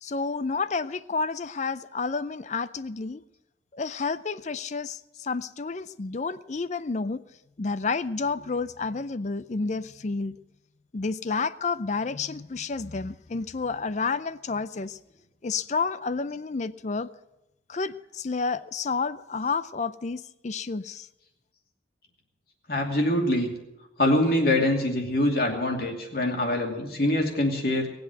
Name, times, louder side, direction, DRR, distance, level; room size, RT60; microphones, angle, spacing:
voice 1, 0.0-3.2 3.7-7.2 7.6-10.4 10.9-15.0 15.4-17.1 17.7-21.1, left 4 dB, 40° left, 16 dB, 0.5 m, -30 dB
voice 2, 22.7-23.5 24.0-27.9, left 1 dB, 55° left, 1 dB, 2.7 m, -24 dB
19.5 x 7.9 x 7.9 m, 0.92 s
head